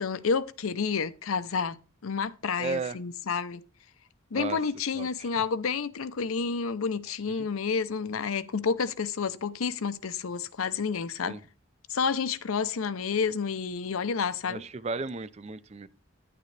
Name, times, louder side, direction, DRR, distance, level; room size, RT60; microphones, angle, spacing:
voice 1, 0.0-1.8 2.0-3.6 4.3-11.4 11.9-14.6, left 5 dB, 85° left, 0.6 m, -30 dB
voice 2, 2.6-3.0 4.3-4.6 5.0-5.3 7.4-7.5 11.2-11.4 14.5-15.9, right 4 dB, 30° right, 0.4 m, -34 dB
10.5 x 8.8 x 3.3 m
head